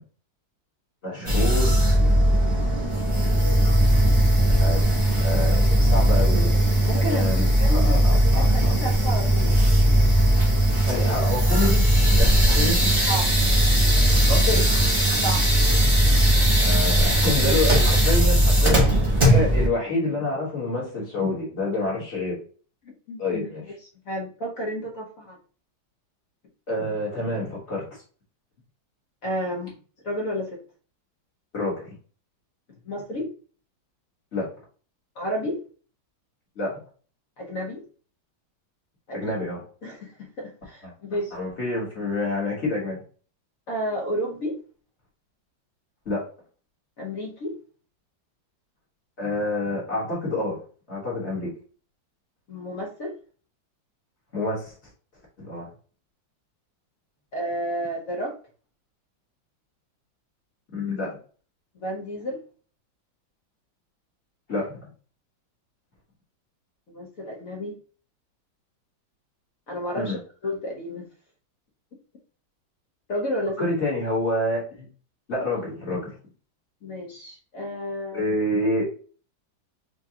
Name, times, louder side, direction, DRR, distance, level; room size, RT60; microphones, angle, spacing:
voice 1, 1.0-1.8 4.6-4.9 5.2-6.5 6.9-8.8 10.7-12.9 14.3-14.7 16.6-18.8 19.3-22.4 23.2-23.6 26.7-27.9 31.5-31.9 34.3-34.5 36.6-36.8 39.1-39.6 40.8-40.9 41.3-43.0 46.0-46.3 49.2-50.6 50.9-51.5 54.3-54.7 55.4-55.7 60.7-61.2 64.5-64.8 70.0-70.2 73.6-74.9 75.3-76.1 78.1-78.8, left 2 dB, 40° left, -5 dB, 1.4 m, -28 dB
sound 1, 1.3-19.7, right 1 dB, 35° right, 0.4 m, -19 dB
voice 2, 6.8-9.6 12.5-12.6 13.1-13.3 15.2-15.6 23.1-23.5 24.1-25.4 29.2-29.7 30.0-30.6 32.8-33.3 35.1-35.6 37.4-37.8 39.1-39.4 39.8-41.3 43.7-44.6 47.0-47.6 52.5-53.1 57.3-58.4 61.8-62.4 66.9-67.8 69.7-70.2 70.4-71.1 73.1-73.7 76.8-78.3, equal, 55° left, 0 dB, 1.1 m, -31 dB
4.9 x 2.2 x 2.7 m, 0.40 s
omnidirectional pair, 2.1 m